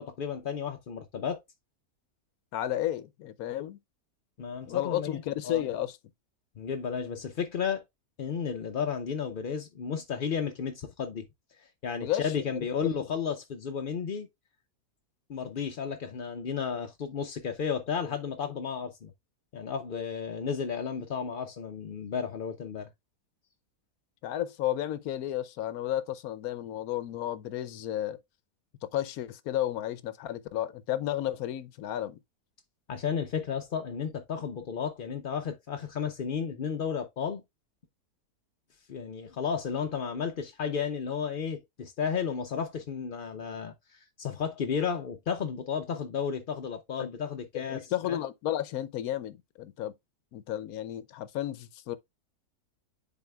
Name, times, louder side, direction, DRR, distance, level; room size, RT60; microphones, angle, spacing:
voice 1, 0.0-1.4 4.4-5.7 6.6-7.8 8.2-11.3 11.8-14.3 15.3-19.1 19.5-22.9 32.9-37.4 38.9-48.2, left 6 dB, 55° left, 0.6 m, -33 dB
voice 2, 2.5-3.8 4.7-6.0 12.0-12.9 24.2-28.2 28.9-32.2 47.0-47.1 47.5-49.9 50.3-52.0, left 12 dB, 75° left, 1.1 m, -33 dB
10.5 x 4.1 x 2.2 m
omnidirectional pair, 1.6 m